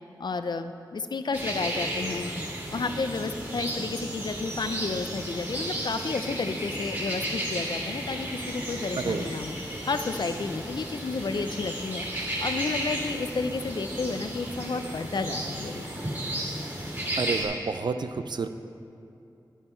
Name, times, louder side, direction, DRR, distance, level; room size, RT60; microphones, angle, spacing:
voice 1, 0.2-2.3 2.7-9.5 9.9-12.0 12.4-15.8, left 4 dB, 65° left, 9 dB, 0.5 m, -31 dB
sound 1, 1.3-17.4, right 1 dB, 30° right, 2.5 m, -33 dB
voice 2, 8.9-9.3 17.2-18.5, right 4 dB, 65° right, 10 dB, 0.5 m, -30 dB
11.0 x 8.0 x 4.4 m, 2.7 s
wide cardioid pair, 80°, 8 cm